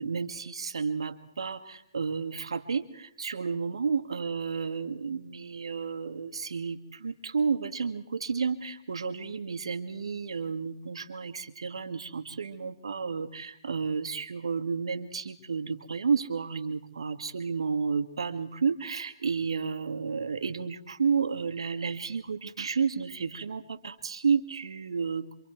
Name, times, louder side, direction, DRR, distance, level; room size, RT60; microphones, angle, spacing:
voice 1, 0.0-25.3, right 5 dB, 75° right, 8 dB, 2.2 m, -31 dB
27.0 x 27.0 x 4.7 m, 0.70 s
figure-of-eight pair, 130°, 3 cm